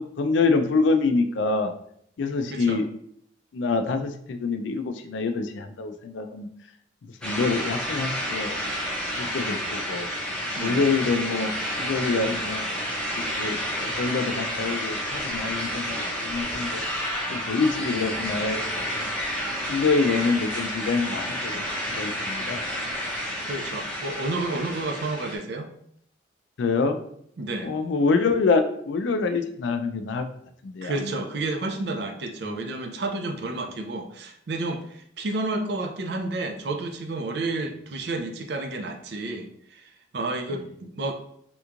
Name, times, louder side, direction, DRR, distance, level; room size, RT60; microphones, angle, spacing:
voice 1, 0.2-1.7 2.2-2.9 3.5-6.5 7.2-8.6 9.2-10.1 10.6-12.7 13.4-16.8 17.3-19.2 19.7-22.6 26.6-27.0 27.6-30.3 30.6-31.1 32.4-32.5, left 4 dB, 80° left, 8 dB, 0.4 m, -26 dB
voice 2, 2.5-2.8 10.6-10.8 23.2-25.7 27.4-27.7 30.8-39.8 40.1-41.1, right 2 dB, 60° right, 4 dB, 0.4 m, -31 dB
sound 1, 7.2-25.4, equal, 5° left, 0.6 m, -30 dB
3.4 x 2.9 x 2.5 m, 0.67 s
head